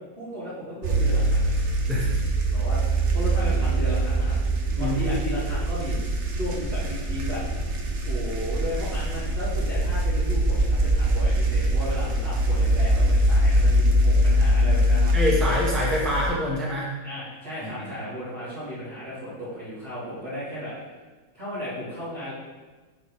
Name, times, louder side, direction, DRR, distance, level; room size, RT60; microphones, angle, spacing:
voice 1, 0.2-1.5 2.5-2.8 3.1-4.4 4.8-6.0 6.3-7.4 8.0-15.1 17.0-20.7 21.3-22.3, equal, 30° right, -13 dB, 2.2 m, -34 dB
sound 1, 0.8-16.3, right 1 dB, 50° right, 0.9 m, -23 dB
voice 2, 15.1-16.9 17.6-18.0, equal, ahead, -4 dB, 0.7 m, -26 dB
9.8 x 4.6 x 3.2 m, 1.3 s
omnidirectional pair, 2.1 m